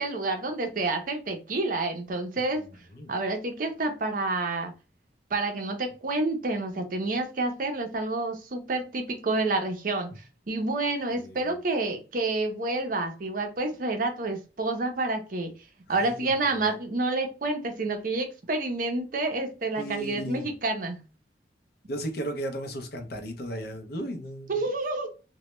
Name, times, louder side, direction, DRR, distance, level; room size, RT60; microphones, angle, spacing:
voice 1, 0.0-2.6 3.1-4.7 5.3-15.5 15.9-21.0 24.5-25.1, right 2 dB, 50° right, 0.5 m, -29 dB
voice 2, 11.1-11.5 15.9-16.7 19.8-20.5 21.9-24.6, right 1 dB, 60° left, 0.5 m, -36 dB
2.1 x 2.1 x 2.9 m
head